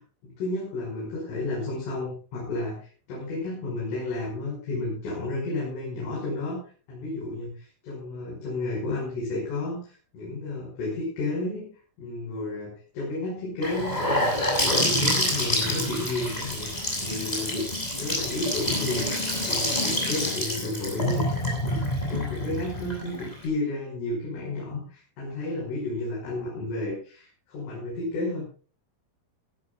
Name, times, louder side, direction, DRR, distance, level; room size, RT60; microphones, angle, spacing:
voice 1, 0.0-6.6 6.9-11.7 12.0-14.4 14.6-16.7 17.0-28.4, left 2 dB, 80° left, -3 dB, 8.1 m, -32 dB
Gurgling / Sink (filling or washing) / Bathtub (filling or washing), 13.6-23.4, left 1 dB, 10° left, 6.8 m, -27 dB
20.5 x 16.0 x 2.4 m, 0.39 s
omnidirectional pair, 5.6 m